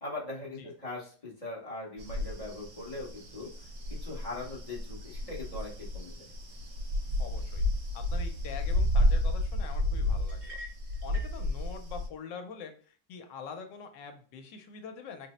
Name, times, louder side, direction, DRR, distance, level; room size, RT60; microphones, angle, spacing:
voice 1, 0.0-3.5 3.9-6.3, left 2 dB, 30° left, -5 dB, 0.6 m, -41 dB
sound 1, 2.0-12.1, left 1 dB, 85° right, 1.6 m, -31 dB
voice 2, 7.2-7.6 7.9-10.6 11.0-15.3, left 6 dB, 75° left, 6 dB, 1.2 m, -44 dB
sound 2, 10.3-11.4, equal, 65° right, 0.7 m, -46 dB
3.8 x 2.0 x 4.0 m, 0.41 s
omnidirectional pair, 2.0 m